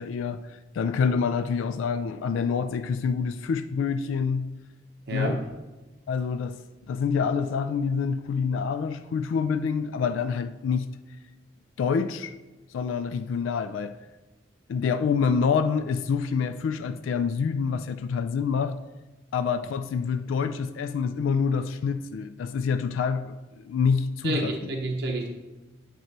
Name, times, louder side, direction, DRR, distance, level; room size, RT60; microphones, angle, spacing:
voice 1, 0.0-4.5 5.1-5.4 6.1-6.6 6.9-10.9 11.8-12.3 12.7-14.0 14.7-18.7 19.3-24.7, left 6 dB, 80° left, 0.3 m, -27 dB
voice 2, 5.1-5.4 24.2-25.3, right 2 dB, 60° right, 0.7 m, -29 dB
9.0 x 3.0 x 4.5 m
head